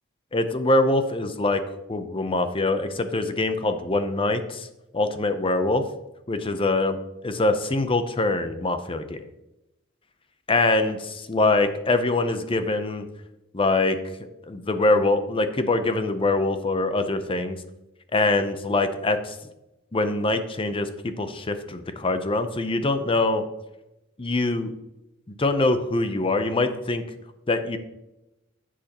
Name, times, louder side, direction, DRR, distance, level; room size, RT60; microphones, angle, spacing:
voice 1, 0.3-1.6 1.9-4.7 4.9-5.8 6.3-7.0 7.2-9.2 10.5-13.1 13.5-14.0 14.5-17.6 18.1-19.4 19.9-23.4 24.2-24.7 25.4-27.0 27.5-27.8, left 2 dB, 25° left, 9 dB, 0.6 m, -23 dB
10.5 x 7.5 x 2.9 m, 0.95 s
head